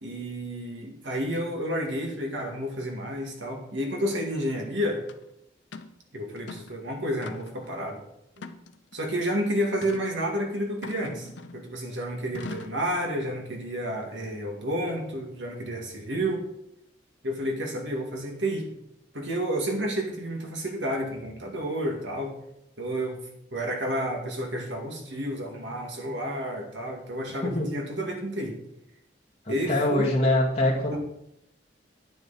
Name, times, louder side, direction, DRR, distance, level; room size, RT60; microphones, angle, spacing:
voice 1, 0.0-5.1 6.1-8.0 8.4-8.5 8.9-16.4 17.2-18.7 19.1-22.3 22.8-23.2 23.5-28.6 29.5-30.1, equal, 75° right, 2 dB, 2.1 m, -30 dB
sound 1, 5.1-5.2 5.7-5.9 6.4-6.8 7.2-7.7 8.4-9.0 9.8-10.1 10.8-11.7 12.3-12.8, left 3 dB, 70° left, 0.7 m, -41 dB
voice 2, 29.4-31.0, left 1 dB, 30° left, -4 dB, 2.2 m, -24 dB
9.5 x 9.2 x 4.1 m, 0.80 s
head